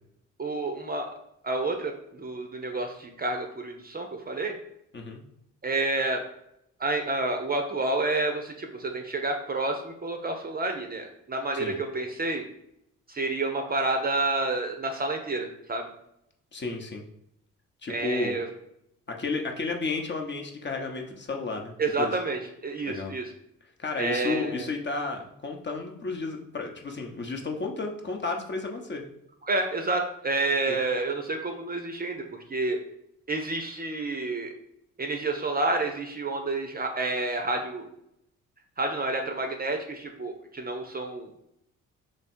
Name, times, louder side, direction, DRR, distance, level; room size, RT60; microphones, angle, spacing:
voice 1, 0.4-1.1 1.4-4.6 5.6-6.2 6.8-12.4 13.1-15.9 17.9-18.5 21.8-23.3 24.0-24.7 29.4-32.8 33.3-34.5 35.0-37.9 38.8-41.3, right 2 dB, 25° right, 4 dB, 0.7 m, -29 dB
voice 2, 16.5-17.0 17.8-18.4 19.1-22.1 22.9-23.1 23.8-29.0 30.7-30.8, left 3 dB, 30° left, 2 dB, 0.9 m, -32 dB
3.3 x 3.1 x 4.3 m, 0.77 s
figure-of-eight pair, 40°, 38 cm